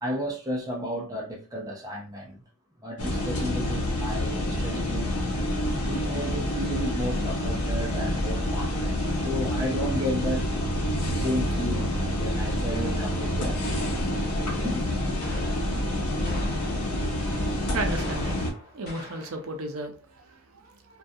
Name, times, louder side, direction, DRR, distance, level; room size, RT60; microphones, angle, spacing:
voice 1, 0.0-2.4 2.8-5.1 5.8-10.5 11.1-13.7 14.5-14.9, equal, 15° right, 0.5 m, -33 dB
sound 1, 3.0-18.5, left 1 dB, 80° left, 0.7 m, -28 dB
sound 2, 10.4-18.0, left 2 dB, ahead, 1.0 m, -43 dB
sound 3, 14.1-14.6 15.2-15.8 16.2-17.1 17.7-19.5, left 1 dB, 45° left, 1.1 m, -43 dB
voice 2, 17.7-18.4 18.7-21.0, right 2 dB, 65° right, 0.6 m, -35 dB
2.3 x 2.2 x 2.6 m
head